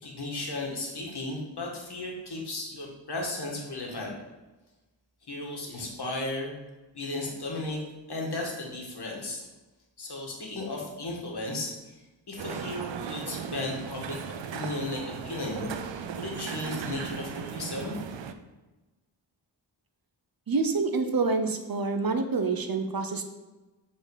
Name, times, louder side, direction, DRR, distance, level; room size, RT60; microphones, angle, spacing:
voice 1, 0.0-4.1 5.3-6.6 6.9-9.5 10.0-11.7 12.3-18.0, left 2 dB, 60° left, -1 dB, 1.9 m, -35 dB
sound 1, 12.4-18.3, right 7 dB, 85° right, 0.6 m, -37 dB
voice 2, 20.5-23.2, right 4 dB, 55° right, 7 dB, 0.8 m, -27 dB
7.1 x 4.1 x 4.9 m, 1.1 s
wide cardioid pair, 70°, 44 cm